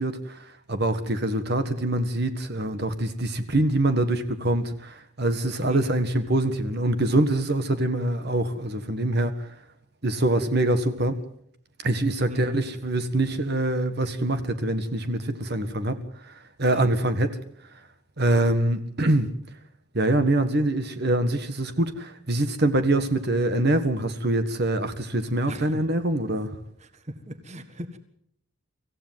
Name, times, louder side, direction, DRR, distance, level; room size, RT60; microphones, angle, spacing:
voice 1, 0.0-9.6 10.0-11.2 11.8-17.4 18.2-19.3 19.9-26.6, right 1 dB, 50° right, 9 dB, 1.6 m, -24 dB
voice 2, 27.1-28.0, equal, 30° right, 10 dB, 1.7 m, -36 dB
25.5 x 15.5 x 7.5 m, 0.69 s
head